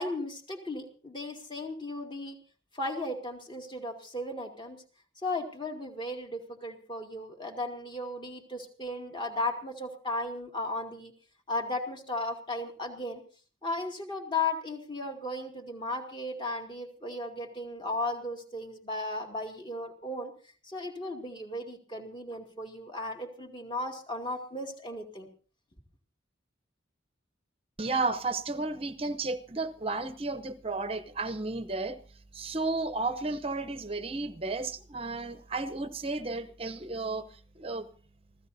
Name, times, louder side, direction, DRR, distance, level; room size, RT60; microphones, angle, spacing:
voice 1, 0.0-2.4 2.7-4.8 5.2-11.1 11.5-13.2 13.6-20.3 20.6-25.3, left 2 dB, 25° left, 3 dB, 2.4 m, -35 dB
voice 2, 27.8-32.0 32.3-37.9, right 3 dB, 30° right, 10 dB, 0.9 m, -33 dB
26.5 x 16.5 x 2.7 m, 0.40 s
head